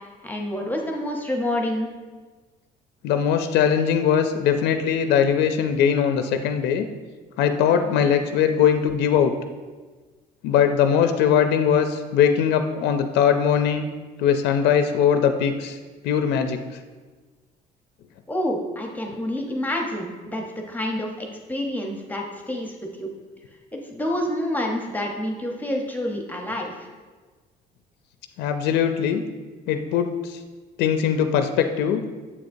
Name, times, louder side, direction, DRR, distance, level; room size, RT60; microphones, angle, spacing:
voice 1, 0.2-1.9 7.8-8.2 18.3-23.1 23.7-26.9, left 1 dB, 10° left, 1 dB, 0.8 m, -28 dB
voice 2, 3.0-6.9 7.4-9.3 10.4-13.9 14.2-15.8 16.0-16.6 28.4-29.2 29.7-30.4 30.8-32.0, left 8 dB, 85° left, 7 dB, 0.4 m, -20 dB
7.3 x 6.4 x 2.6 m, 1.4 s
cardioid pair, 110°, 17 cm